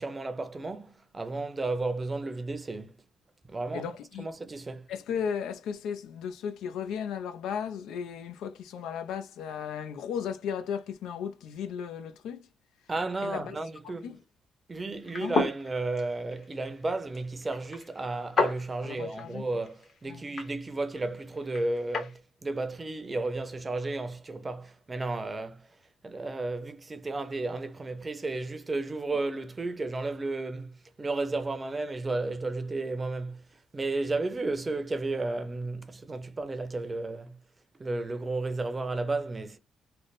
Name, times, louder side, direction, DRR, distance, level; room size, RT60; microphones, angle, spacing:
voice 1, 0.0-2.9 3.5-3.9 4.2-4.9 12.9-14.1 14.7-25.7 26.0-33.4 33.7-37.4 37.8-39.6, right 2 dB, 25° right, 0.6 m, -33 dB
voice 2, 3.7-4.3 4.9-12.5 13.2-13.6 14.0-14.2 15.1-15.4 18.8-19.5 20.1-20.2, left 7 dB, 85° left, 0.4 m, -35 dB
sound 1, 15.0-22.2, left 3 dB, 55° left, 1.1 m, -34 dB
3.3 x 2.0 x 4.0 m
cardioid pair, 90°, 0 cm